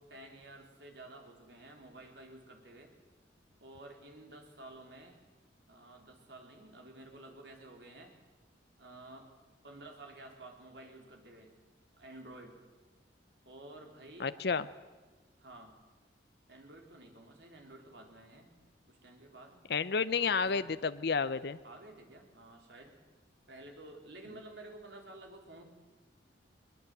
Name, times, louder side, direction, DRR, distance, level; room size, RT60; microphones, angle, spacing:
voice 1, 0.0-2.9 3.6-5.2 5.7-8.1 8.8-9.3 9.6-11.5 11.9-12.6 13.5-14.3 15.4-15.8 16.5-18.5 18.9-19.6 20.2-20.7 21.6-23.0 23.5-25.6, right 2 dB, 65° right, 2 dB, 3.9 m, -52 dB
voice 2, 14.2-14.7 19.7-21.6, left 5 dB, 60° left, 13 dB, 0.6 m, -31 dB
22.0 x 20.5 x 8.0 m, 1.3 s
head